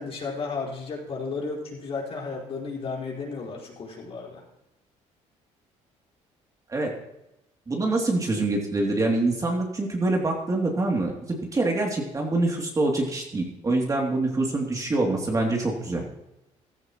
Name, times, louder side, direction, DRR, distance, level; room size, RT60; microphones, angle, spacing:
voice 1, 0.0-4.4, left 4 dB, 50° left, -3 dB, 4.5 m, -33 dB
voice 2, 7.7-16.0, right 2 dB, 25° right, 0 dB, 2.7 m, -25 dB
15.0 x 13.0 x 3.0 m, 0.91 s
cardioid pair, 105°, 13 cm